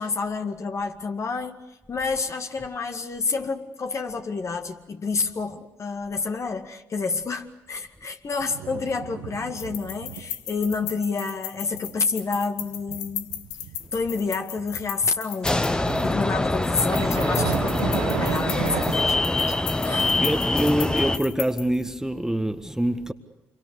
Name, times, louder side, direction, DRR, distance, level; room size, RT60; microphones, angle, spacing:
voice 1, 0.0-1.6 1.9-13.3 13.9-19.6 19.8-20.3, left 4 dB, 40° left, 2.1 m, -29 dB
sound 1, 8.4-10.3 10.7-10.9 11.3-14.9 15.8-18.9, right 11 dB, 70° right, 1.6 m, -33 dB
sound 2, 9.6-16.2 16.6-21.8, left 12 dB, 75° left, 1.1 m, -36 dB
sound 3, 15.4-21.2, left 2 dB, 10° left, 1.2 m, -24 dB
voice 2, 20.2-23.1, right 1 dB, 5° right, 1.7 m, -25 dB
28.0 x 23.5 x 6.7 m
figure-of-eight pair, 45°, 8 cm